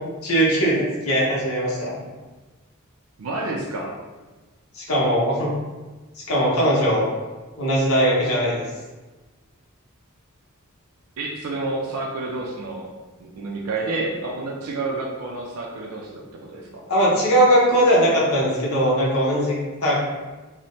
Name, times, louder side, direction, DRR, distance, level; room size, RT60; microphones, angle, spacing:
voice 1, 0.2-2.1 4.7-5.5 6.3-7.1 7.6-8.6 13.9-14.0 16.9-20.0, equal, 85° left, -5 dB, 0.8 m, -20 dB
voice 2, 3.2-4.0 11.2-12.9 13.2-16.2 16.5-16.8, right 2 dB, 80° right, -2 dB, 0.4 m, -29 dB
3.0 x 2.1 x 2.7 m, 1.2 s
head